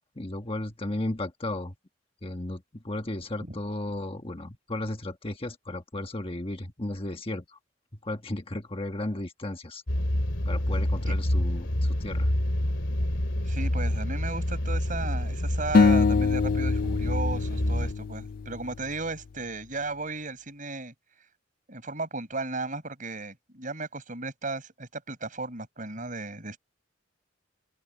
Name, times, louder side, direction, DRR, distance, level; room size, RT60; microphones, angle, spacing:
voice 1, 0.1-1.7 2.2-7.6 8.0-9.8 10.4-12.3, left 1 dB, 30° left, 1.3 m, -34 dB
sound 1, 9.9-17.9, left 1 dB, 70° left, 2.3 m, -27 dB
voice 2, 13.4-20.9 21.7-26.6, right 3 dB, 40° right, 7.4 m, -35 dB
sound 2, 15.7-19.0, left 4 dB, 45° left, 0.4 m, -24 dB
head